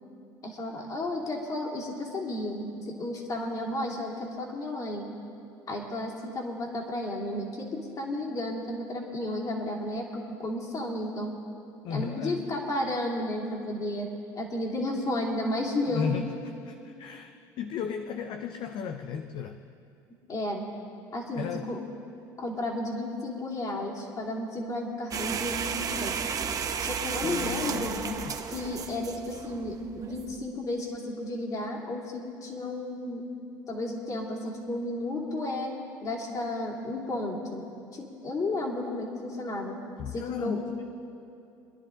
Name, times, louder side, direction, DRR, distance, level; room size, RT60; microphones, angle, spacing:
voice 1, 0.4-5.0 5.7-11.3 11.9-14.1 14.3-16.1 20.3-20.7 21.1-21.8 22.4-26.2 26.8-27.9 28.5-33.2 33.7-35.7 36.0-37.6 37.9-39.8 40.1-40.6, left 1 dB, 40° left, 0 dB, 2.8 m, -33 dB
voice 2, 11.8-12.6 15.9-19.6 21.3-21.7 27.2-28.4 40.0-40.9, left 7 dB, 55° left, 8 dB, 0.6 m, -35 dB
sound 1, 25.1-30.4, right 6 dB, 40° right, 0.9 m, -33 dB
23.5 x 10.5 x 3.8 m, 2.6 s
hypercardioid pair, 80°, 10 cm